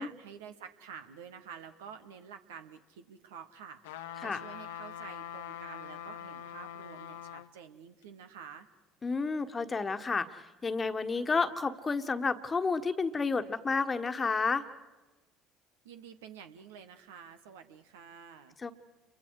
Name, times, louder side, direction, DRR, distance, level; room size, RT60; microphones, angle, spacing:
voice 1, 0.0-8.7 15.8-18.6, right 7 dB, 80° right, 8 dB, 1.4 m, -49 dB
sound 1, 3.8-7.5 8.0-8.1, left 10 dB, 80° left, 0.8 m, -43 dB
voice 2, 9.0-14.6 18.6-18.7, left 4 dB, 30° left, 9 dB, 1.5 m, -31 dB
29.5 x 23.5 x 4.9 m, 1.1 s
hypercardioid pair, 65°, 0 cm